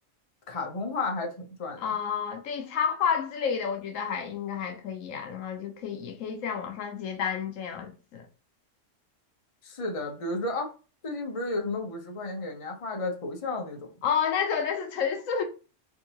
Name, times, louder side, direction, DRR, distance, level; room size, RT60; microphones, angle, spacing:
voice 1, 0.5-1.9 9.6-10.7 11.0-13.9, left 2 dB, 30° left, 0.7 m, -32 dB
voice 2, 1.8-8.3 14.0-15.4, left 7 dB, 80° left, 1.0 m, -30 dB
3.6 x 2.6 x 2.8 m
omnidirectional pair, 1.4 m